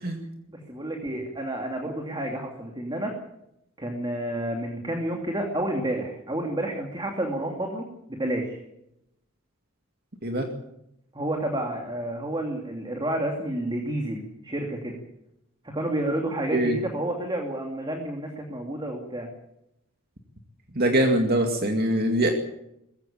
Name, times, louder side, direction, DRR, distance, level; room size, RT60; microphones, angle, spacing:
voice 1, 0.5-3.1 3.8-8.6 11.1-15.0 15.7-19.3, right 1 dB, 20° right, 2 dB, 2.7 m, -30 dB
voice 2, 20.8-22.3, right 1 dB, 45° right, 3 dB, 2.3 m, -22 dB
21.5 x 16.0 x 8.7 m, 0.82 s
head